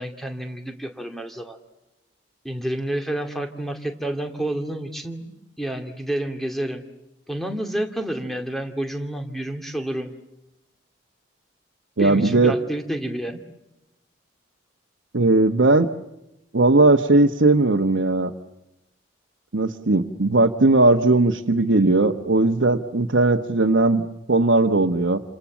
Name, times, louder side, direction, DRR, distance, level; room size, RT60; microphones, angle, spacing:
voice 1, 0.0-1.6 2.4-6.8 7.3-10.1 12.0-13.4, right 1 dB, ahead, 5 dB, 2.4 m, -29 dB
voice 2, 12.0-12.5 15.1-15.9 16.5-18.3 19.5-25.2, right 2 dB, 80° right, 2 dB, 1.1 m, -18 dB
29.5 x 27.5 x 7.3 m, 0.93 s
head